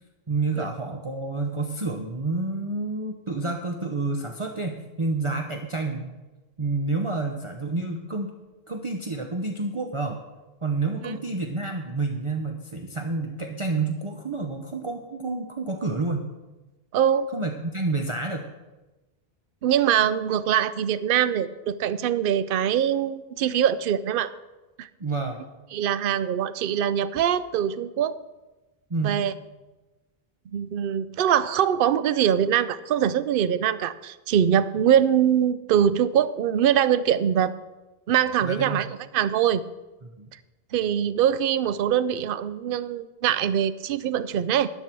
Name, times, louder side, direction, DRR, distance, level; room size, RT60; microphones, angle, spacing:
voice 1, 0.3-6.1 6.6-8.3 8.7-10.2 10.6-16.3 17.3-18.5 25.0-25.4 28.9-29.2 38.4-38.8 40.2-40.3, right 3 dB, 30° right, 3 dB, 0.9 m, -29 dB
voice 2, 16.9-17.3 19.6-24.3 24.8-24.9 25.7-28.2 29.0-29.3 30.5-37.5 38.1-39.6 40.7-44.7, right 9 dB, 65° right, 15 dB, 0.7 m, -23 dB
13.0 x 10.0 x 4.5 m, 1.1 s
omnidirectional pair, 1.0 m